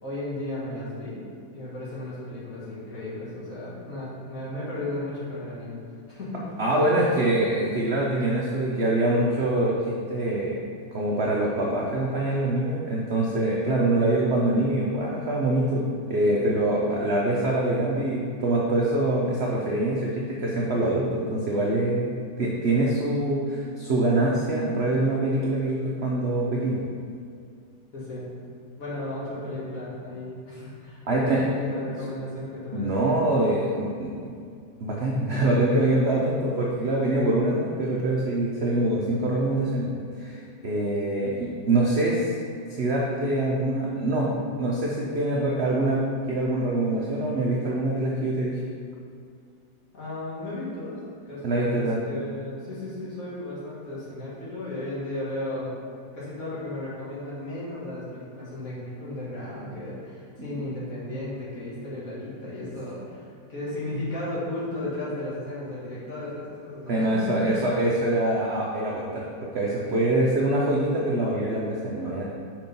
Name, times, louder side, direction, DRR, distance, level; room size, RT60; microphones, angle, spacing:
voice 1, 0.0-1.2 1.5-5.7 6.1-6.4 27.9-28.3 28.8-33.0 49.9-51.0 51.2-55.7 56.1-67.6 72.0-72.2, left 1 dB, 45° left, -8 dB, 2.2 m, -34 dB
voice 2, 6.6-10.6 10.9-15.8 16.1-26.8 31.0-31.7 32.7-34.3 34.8-42.3 42.7-48.6 51.4-52.0 60.5-60.6 66.9-72.2, right 1 dB, 65° right, -4 dB, 0.6 m, -24 dB
5.2 x 4.5 x 5.3 m, 2.3 s
omnidirectional pair, 2.0 m